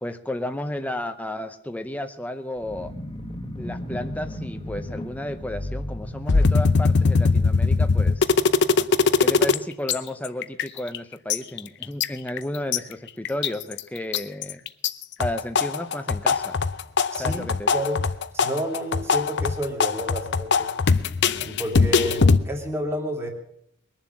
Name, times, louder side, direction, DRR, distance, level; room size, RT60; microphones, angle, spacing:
voice 1, 0.0-2.9 3.6-8.3 9.2-14.6 15.2-16.6 17.2-17.7, left 1 dB, 5° left, 7 dB, 0.7 m, -32 dB
sound 1, 2.6-8.5, left 1 dB, 25° left, 1.1 m, -36 dB
sound 2, 6.3-9.6 9.9-10.0 10.2-11.0 11.3-12.8 13.2-13.8 14.1-14.9 15.2-22.4, left 4 dB, 55° left, 0.6 m, -20 dB
voice 2, 17.1-17.5 17.7-18.0 18.3-20.7 21.4-23.3, equal, 10° right, 1 dB, 2.5 m, -30 dB
21.5 x 7.3 x 7.1 m, 0.73 s
head